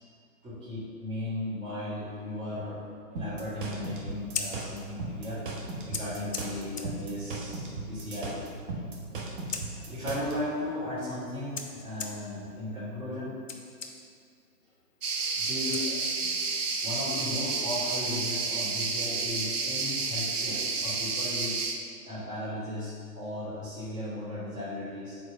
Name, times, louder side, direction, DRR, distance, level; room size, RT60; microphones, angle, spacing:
voice 1, 0.4-2.8 3.1-5.4 5.9-8.4 9.7-13.3 15.3-16.4 16.8-21.6 22.0-25.2, left 1 dB, 10° right, -10 dB, 1.2 m, -36 dB
sound 1, 3.2-10.3, right 3 dB, 35° right, 0.8 m, -36 dB
Scissors, 4.1-16.5, left 5 dB, 55° left, 0.7 m, -44 dB
sound 2, 15.0-21.8, right 4 dB, 70° right, 0.8 m, -30 dB
4.5 x 4.1 x 5.5 m, 2.2 s
figure-of-eight pair, 130°, 47 cm